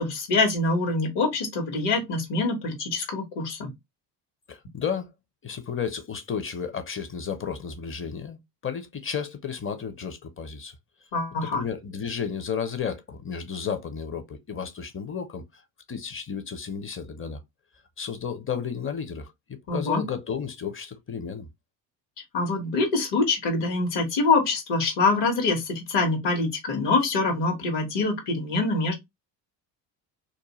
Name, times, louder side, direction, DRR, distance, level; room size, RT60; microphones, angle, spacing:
voice 1, 0.0-3.7 11.1-11.6 19.7-20.0 22.3-28.9, left 3 dB, 55° left, 1.3 m, -25 dB
voice 2, 4.5-5.1 5.4-10.7 11.4-15.6 15.9-17.4 18.0-21.5, left 7 dB, 25° left, 0.6 m, -33 dB
2.6 x 2.2 x 2.9 m
supercardioid pair, 75°, 49 cm